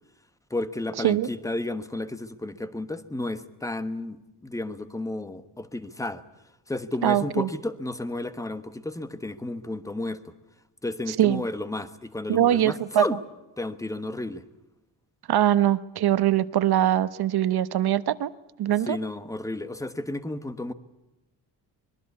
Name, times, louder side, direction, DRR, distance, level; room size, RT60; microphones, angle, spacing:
voice 1, 0.5-6.2 6.7-10.3 10.8-13.2 13.6-14.4 18.8-20.7, left 2 dB, 5° left, 12 dB, 1.2 m, -32 dB
voice 2, 7.0-7.5 11.2-11.4 12.3-13.0 15.3-18.3 18.6-19.0, right 12 dB, 60° right, 14 dB, 1.1 m, -22 dB
25.0 x 22.0 x 8.4 m, 0.98 s
wide cardioid pair, 165°, 43 cm